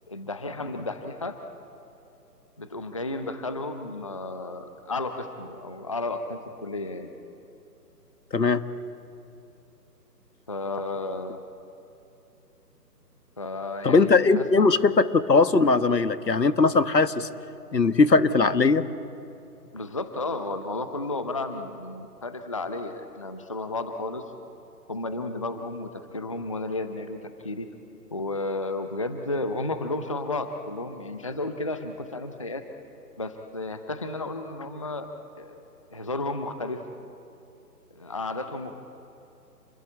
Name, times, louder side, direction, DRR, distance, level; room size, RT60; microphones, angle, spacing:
voice 1, 0.1-1.4 2.6-7.1 10.5-11.4 13.4-14.5 19.7-24.2 24.9-27.7 28.1-32.6 33.2-35.1 35.4-35.6 35.9-36.9 37.9-38.7, left 2 dB, 20° left, 8 dB, 0.6 m, -32 dB
voice 2, 13.8-17.3 17.7-18.8, left 4 dB, 80° left, 12 dB, 1.6 m, -20 dB
29.0 x 21.5 x 8.9 m, 2.8 s
figure-of-eight pair, 150°, 49 cm